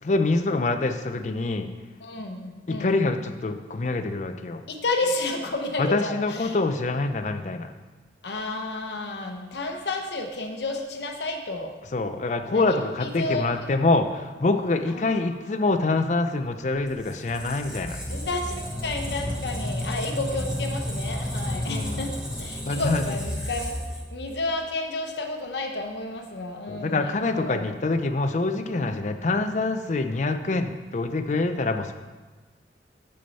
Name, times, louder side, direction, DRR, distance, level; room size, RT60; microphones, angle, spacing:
voice 1, 0.0-1.7 2.7-4.6 5.8-7.7 11.9-18.0 21.7-22.0 22.7-23.2 26.7-31.9, left 3 dB, 40° left, 8 dB, 0.4 m, -25 dB
voice 2, 2.0-2.9 4.7-6.6 8.2-11.7 12.5-13.5 14.9-15.2 18.1-22.1 22.4-23.8 24.1-27.7, left 2 dB, 75° left, 3 dB, 0.9 m, -31 dB
Squeak, 16.8-24.5, equal, 5° right, 0.8 m, -32 dB
7.0 x 6.3 x 4.1 m, 1.3 s
head